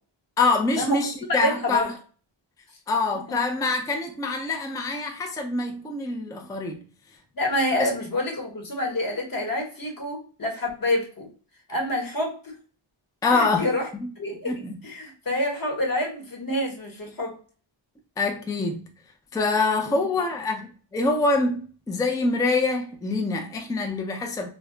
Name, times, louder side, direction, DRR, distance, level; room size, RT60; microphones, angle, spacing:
voice 1, 0.4-1.9 2.9-6.8 7.8-7.9 13.2-13.7 14.5-14.8 18.2-18.8 19.3-21.6 21.9-24.5, left 3 dB, 10° left, 0.3 m, -25 dB
voice 2, 1.3-1.9 3.3-3.4 7.3-11.3 11.7-12.4 13.3-13.9 14.2-14.5 14.8-17.4 19.9-20.0, left 1 dB, 45° left, 1.0 m, -27 dB
2.2 x 2.0 x 3.6 m
wide cardioid pair, 125°, 47 cm